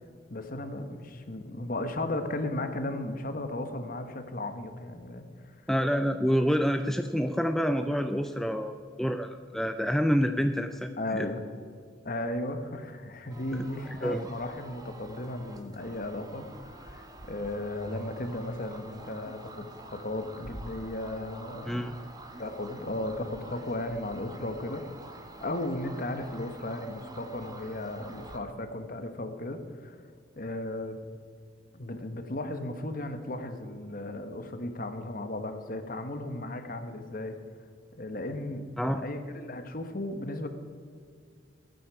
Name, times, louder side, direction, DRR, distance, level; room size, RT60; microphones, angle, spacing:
voice 1, 0.3-5.6 11.0-11.4 12.0-21.9 22.4-24.9 25.4-30.0 30.4-31.0 31.7-37.4 38.0-40.5, left 1 dB, 50° left, 7 dB, 1.2 m, -35 dB
voice 2, 5.7-11.3 13.5-13.6 14.0-14.3 21.6-22.0 38.8-39.0, equal, ahead, 7 dB, 0.4 m, -28 dB
sound 1, 13.3-28.4, right 1 dB, 20° right, 1.1 m, -47 dB
22.0 x 9.4 x 4.8 m, 2.1 s
head